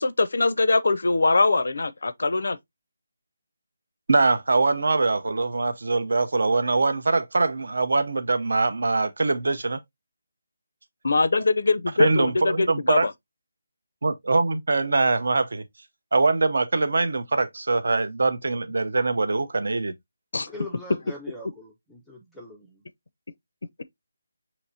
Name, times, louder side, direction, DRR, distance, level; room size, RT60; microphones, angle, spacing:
voice 1, 0.0-2.6 11.0-13.1 20.3-20.5, left 3 dB, 60° left, 0.4 m, -22 dB
voice 2, 4.1-9.8 12.0-13.1 14.0-15.6 16.1-19.9, right 3 dB, 60° right, 0.6 m, -23 dB
voice 3, 20.5-22.8, left 2 dB, ahead, 0.4 m, -42 dB
6.0 x 2.9 x 2.6 m
hypercardioid pair, 175°, 0 cm